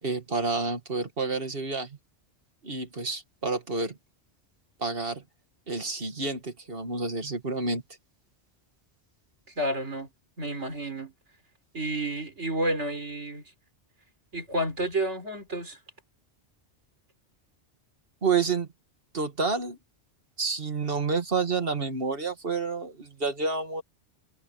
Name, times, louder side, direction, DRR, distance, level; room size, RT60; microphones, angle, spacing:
voice 1, 0.0-2.0 2.6-4.0 4.8-5.2 5.7-7.8 18.2-18.7 19.1-19.8 20.4-23.8, right 4 dB, 55° right, 2.2 m, -29 dB
voice 2, 9.6-10.1 10.4-11.1 11.7-13.4 14.3-15.8, right 1 dB, 85° right, 4.2 m, -30 dB
omnidirectional pair, 1.2 m